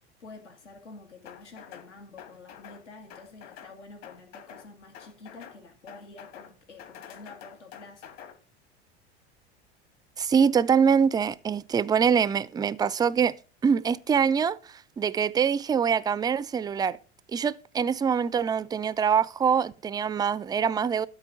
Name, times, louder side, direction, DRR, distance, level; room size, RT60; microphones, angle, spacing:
voice 1, 0.2-8.2, left 3 dB, 85° left, 2.1 m, -48 dB
sound 1, 1.2-1.9 2.2-2.8 3.1-3.7 4.0-4.7 4.9-5.6 5.9-6.5 6.8-8.3, left 9 dB, 55° left, 2.5 m, -47 dB
voice 2, 10.2-13.3 13.6-14.6 15.0-17.0 17.3-21.1, right 7 dB, 10° right, 0.3 m, -24 dB
12.5 x 4.3 x 6.2 m
hypercardioid pair, 85°, 34 cm